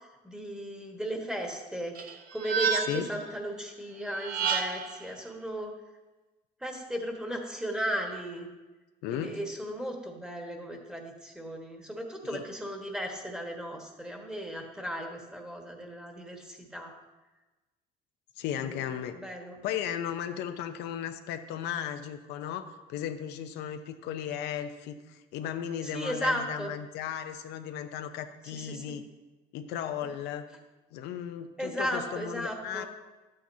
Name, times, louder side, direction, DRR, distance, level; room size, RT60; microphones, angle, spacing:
voice 1, 0.2-2.0 2.3-5.7 6.6-8.5 9.1-16.9 19.2-19.5 25.9-26.7 28.5-28.8 31.6-32.9, equal, 5° right, 2 dB, 1.4 m, -35 dB
sound 1, 1.9-3.2 4.1-5.0, right 6 dB, 55° right, 0.9 m, -30 dB
voice 2, 9.0-9.4 12.2-12.4 18.4-19.2 19.6-29.1 29.5-30.5 30.9-32.8, left 9 dB, 90° left, 7 dB, 0.6 m, -35 dB
11.5 x 8.8 x 2.7 m, 1.1 s
cardioid pair, 110°, 17 cm